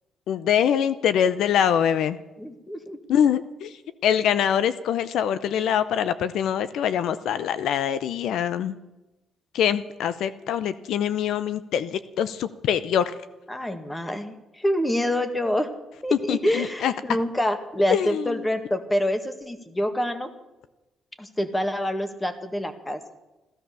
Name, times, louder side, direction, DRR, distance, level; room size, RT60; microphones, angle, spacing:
voice 1, 0.3-2.2 3.1-3.7 4.0-8.7 9.5-13.1 16.1-16.9 17.9-18.4, left 9 dB, 80° left, 13 dB, 0.6 m, -24 dB
voice 2, 2.4-3.0 13.5-15.7 16.0-20.3 21.2-23.0, equal, 15° left, 8 dB, 1.8 m, -26 dB
16.0 x 13.0 x 7.0 m, 1.0 s
cardioid pair, 90°, 0 cm